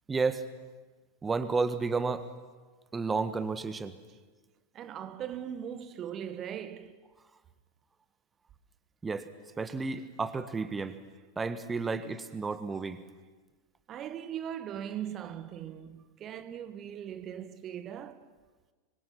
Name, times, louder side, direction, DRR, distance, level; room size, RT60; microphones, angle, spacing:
voice 1, 0.1-0.4 1.2-2.3 2.9-3.9 9.0-9.3 9.6-11.0 11.4-13.0, right 4 dB, 15° right, 1.5 m, -31 dB
voice 2, 4.7-7.0 13.9-18.3, right 9 dB, 30° right, 1.4 m, -40 dB
26.0 x 23.0 x 5.9 m
figure-of-eight pair, 90°, 0 cm